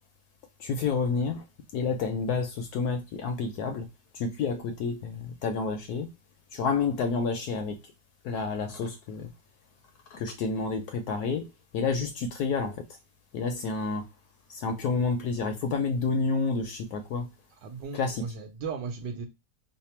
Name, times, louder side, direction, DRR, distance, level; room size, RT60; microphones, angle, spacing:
voice 1, 0.6-1.4 1.7-3.9 4.2-6.1 6.5-7.8 8.2-9.3 10.1-11.5 11.7-12.8 13.3-14.0 14.5-17.3 17.9-18.2, left 4 dB, 70° left, 1.0 m, -29 dB
voice 2, 17.6-19.3, right 5 dB, 75° right, 1.3 m, -36 dB
3.3 x 2.0 x 4.2 m
omnidirectional pair, 1.9 m